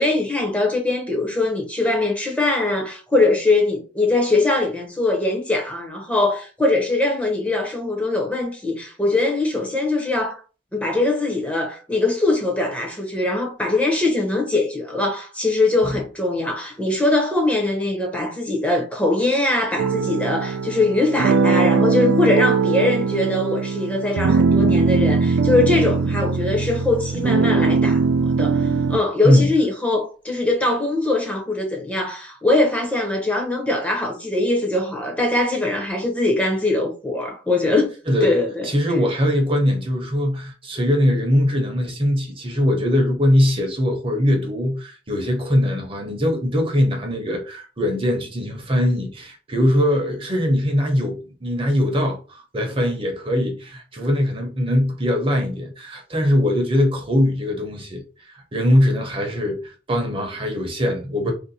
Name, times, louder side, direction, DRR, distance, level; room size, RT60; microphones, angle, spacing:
voice 1, 0.0-10.4 10.7-28.0 28.4-37.9 38.2-38.7, left 2 dB, 5° left, 0.6 m, -21 dB
sound 1, 19.8-29.0, right 4 dB, 80° right, 0.3 m, -20 dB
voice 2, 38.6-58.0 58.3-61.3, left 1 dB, 30° right, 0.7 m, -21 dB
2.6 x 2.2 x 4.0 m
head